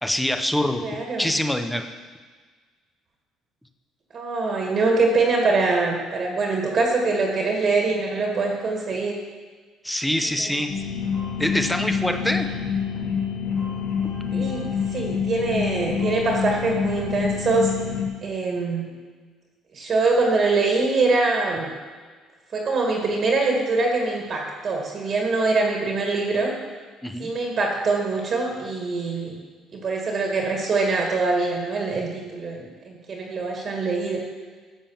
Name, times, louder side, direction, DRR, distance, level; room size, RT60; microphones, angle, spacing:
voice 1, 0.0-0.8 1.2-1.9 9.8-10.7 11.4-12.5 27.0-27.3, left 1 dB, ahead, 7 dB, 0.8 m, -24 dB
voice 2, 0.8-1.3 4.1-9.1 14.3-17.7 18.2-18.9 19.7-21.7 22.5-26.5 27.2-29.4 29.7-34.2, right 3 dB, 30° right, 0 dB, 2.0 m, -23 dB
sound 1, 10.7-18.1, left 7 dB, 45° left, 3.3 m, -27 dB
12.5 x 7.5 x 7.2 m, 1.5 s
cardioid pair, 155°, 0 cm